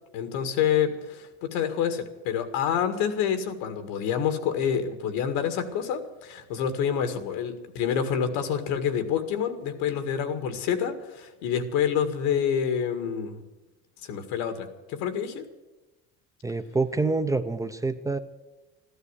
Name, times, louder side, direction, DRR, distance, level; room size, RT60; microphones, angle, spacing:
voice 1, 0.1-13.4 14.0-15.5, left 8 dB, 85° left, 9 dB, 2.0 m, -27 dB
voice 2, 16.4-18.2, right 3 dB, 10° right, 9 dB, 0.5 m, -26 dB
14.0 x 12.5 x 8.2 m, 1.1 s
cardioid pair, 140°, 32 cm